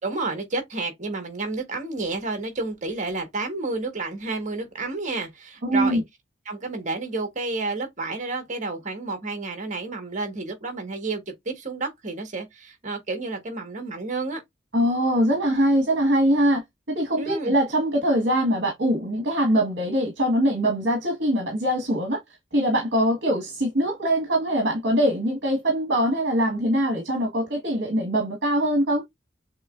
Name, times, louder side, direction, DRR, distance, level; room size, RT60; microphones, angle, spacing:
voice 1, 0.0-6.0 6.4-14.4 17.2-17.6, right 3 dB, 40° right, 1.5 m, -30 dB
voice 2, 5.6-6.0 14.7-16.6 16.9-22.2 22.5-29.0, equal, 55° right, 1.5 m, -22 dB
6.7 x 3.0 x 2.5 m
head